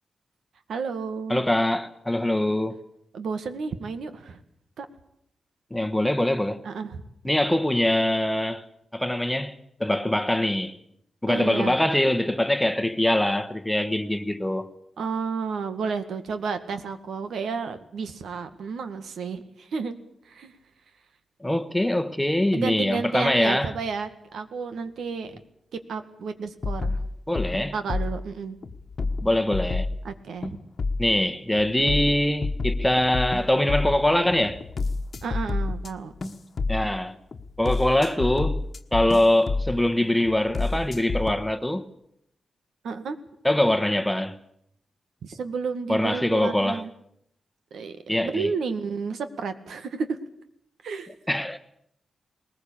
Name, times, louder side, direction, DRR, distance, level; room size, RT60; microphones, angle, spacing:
voice 1, 0.7-1.4 3.1-4.4 4.8-4.9 6.6-7.0 11.3-11.8 15.0-20.0 20.3-20.5 22.5-25.3 25.9-27.0 27.7-28.6 30.0-30.6 35.2-36.1 42.8-43.2 45.2-46.9 47.7-50.2 50.8-51.1, right 5 dB, 85° right, 1.9 m, -31 dB
voice 2, 1.3-2.8 5.7-6.6 7.2-8.6 8.9-9.5 9.8-10.8 11.2-14.7 21.4-23.7 27.3-27.7 29.2-29.9 31.0-34.6 36.7-37.1 37.6-38.6 38.9-41.9 43.4-44.4 45.9-46.8 48.1-48.5 51.3-51.6, left 1 dB, 5° left, 1.2 m, -23 dB
sound 1, 26.6-28.2 28.6-30.0 30.4-31.1 31.5-35.9 36.2-36.9 37.3-39.8 40.2-41.3, left 3 dB, 45° left, 1.3 m, -29 dB
20.0 x 20.0 x 8.6 m
wide cardioid pair, 145°, 0 cm